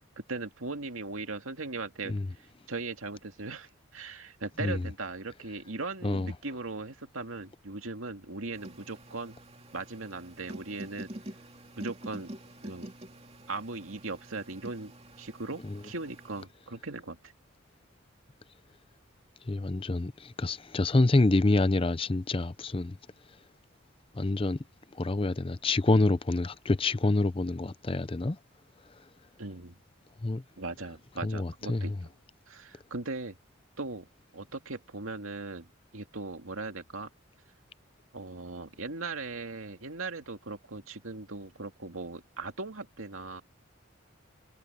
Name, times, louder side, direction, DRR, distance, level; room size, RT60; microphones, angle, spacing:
voice 1, 0.2-9.4 9.7-11.1 11.8-12.3 12.6-12.9 13.5-17.3 29.4-29.7 30.6-31.9 32.5-33.4 33.8-34.1 34.3-35.7 35.9-37.1 38.1-43.4, right 3 dB, 90° right, 2.4 m, -39 dB
sound 1, 8.5-16.5, right 1 dB, 30° right, 2.9 m, -46 dB
voice 2, 19.5-23.0 24.2-24.6 25.0-28.4 30.2-30.4 31.2-31.9, left 2 dB, 25° left, 0.6 m, -27 dB
head